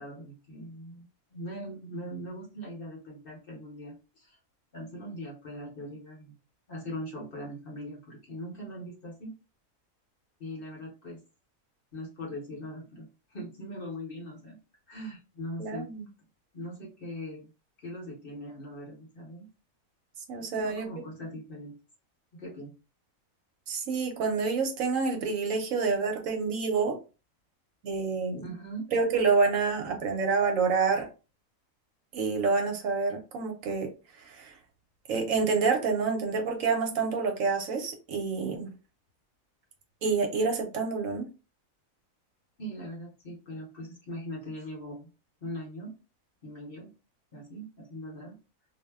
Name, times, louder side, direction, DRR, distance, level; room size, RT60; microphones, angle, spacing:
voice 1, 0.0-4.4 4.7-6.3 6.7-9.4 10.4-11.2 11.9-14.6 14.9-15.9 16.5-17.5 17.8-19.5 20.4-21.8 22.3-22.7 28.4-28.9 42.6-45.1 45.4-45.9 46.4-46.9 47.3-48.4, equal, 45° left, 0.9 m, -41 dB
voice 2, 15.6-16.1 20.3-20.9 23.7-27.0 27.8-28.4 28.9-31.1 32.1-33.9 34.2-34.5 35.1-38.7 40.0-41.3, right 4 dB, 70° right, 1.0 m, -28 dB
2.5 x 2.0 x 3.4 m
omnidirectional pair, 1.5 m